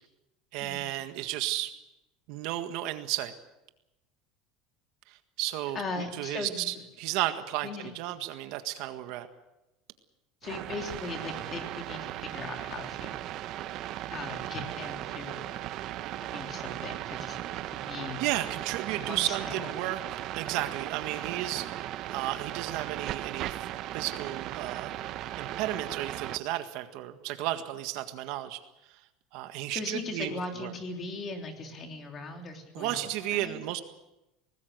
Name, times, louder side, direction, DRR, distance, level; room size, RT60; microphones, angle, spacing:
voice 1, 0.5-1.7 2.3-3.3 5.1-5.8 6.2-9.3 18.2-20.0 20.4-21.7 22.1-23.6 23.9-24.9 25.4-28.6 29.3-30.7 32.7-33.8, right 14 dB, 60° right, 8 dB, 1.7 m, -33 dB
voice 2, 5.7-6.8 7.6-7.9 10.4-13.3 14.1-15.6 16.2-17.4 17.7-18.3 19.1-19.5 29.7-33.6, left 3 dB, 25° left, 3 dB, 3.3 m, -39 dB
sound 1, 10.4-26.4, right 13 dB, 45° right, 0.8 m, -37 dB
24.0 x 19.5 x 6.7 m, 0.94 s
cardioid pair, 160°, 0 cm